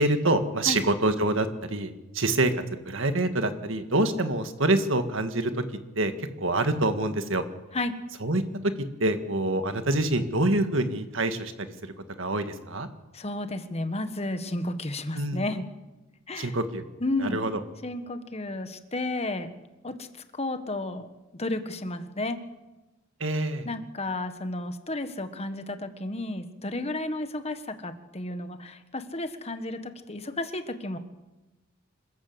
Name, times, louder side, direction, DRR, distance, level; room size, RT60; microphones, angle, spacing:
voice 1, 0.0-5.6 6.0-7.4 8.2-12.9 15.1-15.4 16.4-16.8 17.2-17.6 23.2-23.7, right 2 dB, 60° right, 8 dB, 1.8 m, -26 dB
voice 2, 13.1-15.6 16.3-16.5 17.0-17.4 17.8-19.6 19.8-20.1 20.3-21.1 21.4-22.4 23.6-31.0, left 2 dB, 30° left, 9 dB, 1.5 m, -32 dB
26.5 x 14.0 x 8.0 m, 1.1 s
head